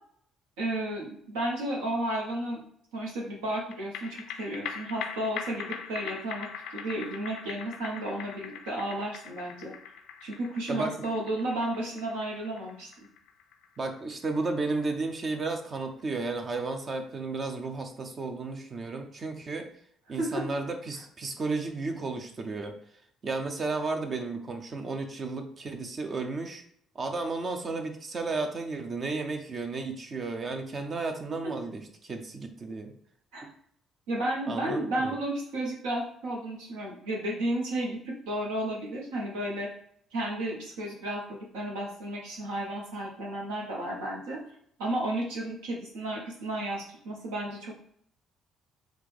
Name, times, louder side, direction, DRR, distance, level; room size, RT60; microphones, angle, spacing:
voice 1, 0.6-2.6 2.9-9.7 10.2-12.9 20.2-20.4 31.4-31.5 33.3-33.5 34.1-39.7 40.1-44.4 44.8-47.8, right 1 dB, 80° right, -2 dB, 1.2 m, -33 dB
sound 1, 3.7-16.4 16.7-16.8, left 7 dB, 70° left, 0.4 m, -42 dB
voice 2, 13.8-19.7 20.1-22.8 23.2-26.6 26.9-32.9 34.5-35.1, right 3 dB, 45° right, 5 dB, 0.7 m, -33 dB
4.5 x 2.5 x 3.4 m, 0.65 s
hypercardioid pair, 50°, 0 cm